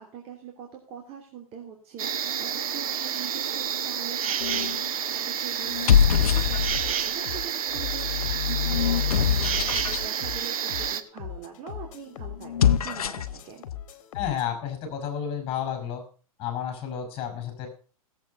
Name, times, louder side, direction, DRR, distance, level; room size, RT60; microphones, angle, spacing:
voice 1, 0.0-13.6, right 8 dB, 35° right, 1 dB, 3.0 m, -43 dB
sound 1, 2.0-11.0, right 8 dB, 70° right, 1.4 m, -29 dB
sound 2, 4.4-4.8 5.6-7.0 7.7-10.1 12.4-13.4, left 9 dB, 80° left, 1.0 m, -24 dB
sound 3, 6.7-14.5, left 10 dB, 60° left, 2.2 m, -40 dB
voice 2, 14.1-16.0 16.4-17.7, left 9 dB, 30° left, 8 dB, 5.7 m, -31 dB
18.0 x 8.0 x 5.4 m, 0.40 s
hypercardioid pair, 125°, 19 cm